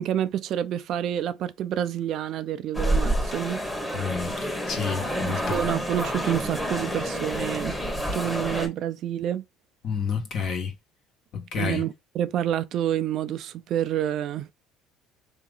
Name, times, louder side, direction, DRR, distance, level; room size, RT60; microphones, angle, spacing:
voice 1, 0.0-3.6 5.3-7.8 8.1-9.4 11.6-14.5, right 11 dB, 55° right, 0.4 m, -28 dB
sound 1, 2.7-8.7, equal, 10° left, 1.2 m, -28 dB
voice 2, 3.9-4.4 4.7-5.6 9.8-10.7 11.3-11.8, left 6 dB, 50° left, 1.4 m, -29 dB
3.6 x 2.9 x 3.8 m
cardioid pair, 115°, 0 cm